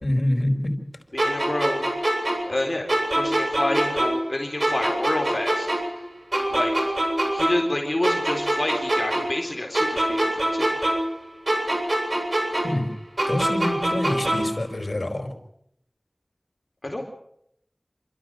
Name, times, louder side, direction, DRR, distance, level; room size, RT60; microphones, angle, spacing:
voice 1, 0.0-0.8 12.6-12.9 13.3-15.3, left 1 dB, 75° left, 4 dB, 4.7 m, -26 dB
voice 2, 1.1-1.9 2.5-5.7 6.5-6.9 7.3-10.7 16.8-17.1, left 1 dB, 50° left, 1 dB, 4.0 m, -28 dB
sound 1, 1.2-4.3 4.6-7.8 8.0-11.2 11.5-14.6, right 1 dB, 60° right, 8.0 m, -24 dB
29.0 x 13.5 x 7.7 m, 0.74 s
wide cardioid pair, 40°, 0 cm